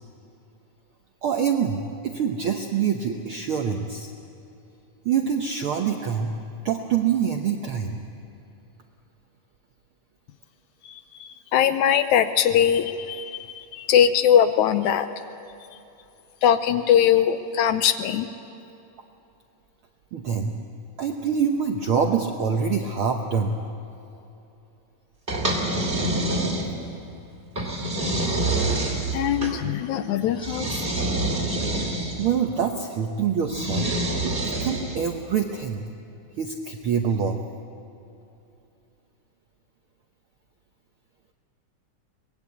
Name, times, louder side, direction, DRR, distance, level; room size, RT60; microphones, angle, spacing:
voice 1, 1.2-4.1 5.0-6.3 6.6-7.9 20.1-20.6 21.0-23.5 32.2-34.0 34.2-35.8 36.4-37.4, right 7 dB, 70° right, 3 dB, 1.3 m, -25 dB
voice 2, 11.2-15.1 16.4-18.3 29.1-30.7, left 9 dB, 75° left, 10 dB, 1.9 m, -21 dB
sound 1, 25.3-27.0 27.6-29.6 30.4-32.3 33.5-35.1, right 2 dB, 15° right, 2.5 m, -26 dB
24.0 x 20.5 x 8.4 m, 2.8 s
omnidirectional pair, 3.7 m